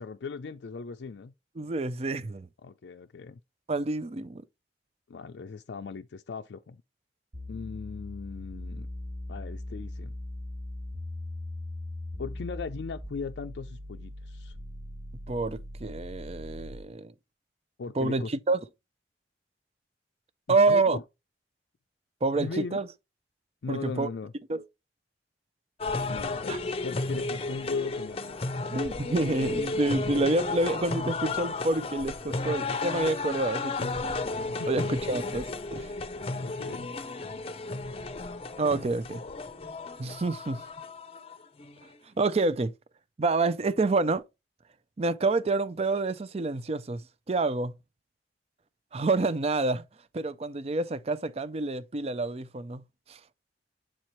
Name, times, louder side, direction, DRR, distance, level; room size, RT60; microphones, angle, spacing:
voice 1, 0.0-1.3 2.6-3.4 5.1-6.8 7.5-8.9 9.3-10.1 12.2-14.6 17.8-18.3 20.5-21.0 22.4-22.8 23.6-24.3 26.0-28.5 34.5-34.9 36.4-36.9, left 5 dB, 80° left, 0.4 m, -38 dB
voice 2, 1.6-2.5 3.7-4.4 15.3-17.1 18.0-18.6 20.5-21.0 22.2-22.9 23.7-24.1 24.5-24.6 26.5-26.6 28.7-33.9 34.7-36.0 38.6-39.2 40.0-40.6 42.2-42.7 43.2-44.2 45.0-47.0 47.3-47.7 48.9-49.8 50.1-53.2, right 3 dB, 35° right, 0.5 m, -28 dB
sound 1, 7.3-16.9, left 1 dB, 75° right, 2.3 m, -40 dB
sound 2, 25.8-41.9, left 3 dB, 35° left, 0.6 m, -33 dB
7.5 x 4.4 x 3.0 m
head